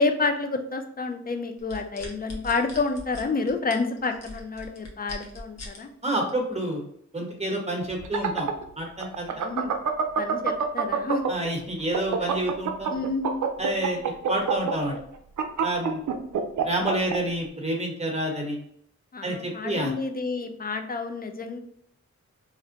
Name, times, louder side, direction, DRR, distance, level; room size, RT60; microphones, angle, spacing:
voice 1, 0.0-5.9 9.4-9.7 10.2-11.2 12.9-13.4 19.1-21.6, left 3 dB, 30° left, 6 dB, 0.4 m, -29 dB
sound 1, 1.6-5.8 6.3-6.5, left 1 dB, 60° left, 0.8 m, -40 dB
voice 2, 6.0-6.8 7.1-8.5 8.8-9.3 11.3-12.9 13.6-14.0 14.3-14.9 15.6-16.0 16.6-18.6 19.2-19.9, right 1 dB, 20° right, 0 dB, 1.0 m, -28 dB
sound 2, 7.9-11.5 11.8-17.2, right 7 dB, 75° right, 0.5 m, -26 dB
2.5 x 2.1 x 3.8 m, 0.68 s
cardioid pair, 65°, 30 cm